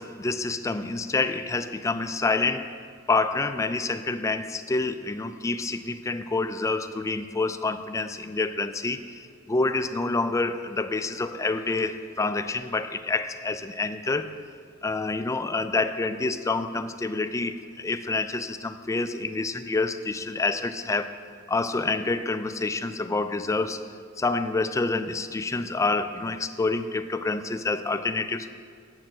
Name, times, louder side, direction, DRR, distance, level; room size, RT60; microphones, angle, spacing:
voice 1, 0.0-14.4 14.8-21.2 21.5-23.9 24.2-28.5, left 3 dB, 15° left, 11 dB, 0.3 m, -28 dB
8.6 x 6.7 x 6.0 m, 2.1 s
head